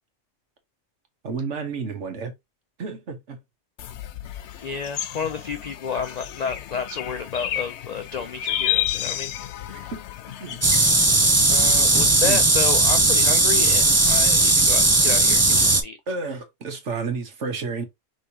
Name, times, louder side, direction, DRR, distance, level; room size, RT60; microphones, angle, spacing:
voice 1, 1.2-2.3 2.8-3.4 9.7-10.0 10.4-10.6 12.2-12.5 16.1-17.8, right 4 dB, 80° right, 1.5 m, -31 dB
sound 1, 3.8-10.9, left 12 dB, 70° left, 0.9 m, -31 dB
voice 2, 4.6-9.3 11.5-16.0, left 6 dB, 50° left, 0.5 m, -31 dB
sound 2, 10.6-15.8, right 2 dB, 15° right, 0.6 m, -17 dB
5.5 x 3.2 x 2.8 m
omnidirectional pair, 1.2 m